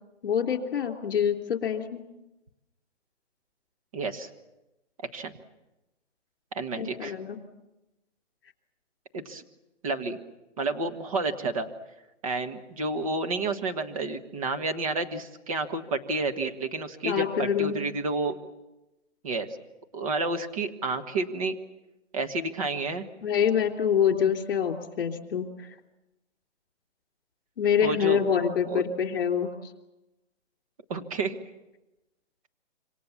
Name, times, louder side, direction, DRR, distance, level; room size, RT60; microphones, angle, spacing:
voice 1, 0.2-2.0 6.8-7.4 17.1-17.8 23.2-25.5 27.6-29.5, left 8 dB, 50° left, 5 dB, 3.4 m, -26 dB
voice 2, 3.9-4.3 5.1-5.3 6.5-7.1 9.1-9.4 9.8-10.2 10.6-11.7 12.2-18.4 19.2-19.5 19.9-21.5 22.1-23.1 27.8-28.2 28.7-28.8 30.9-31.3, right 3 dB, 30° right, 7 dB, 1.5 m, -30 dB
27.0 x 25.0 x 7.3 m, 0.99 s
hypercardioid pair, 165°, 37 cm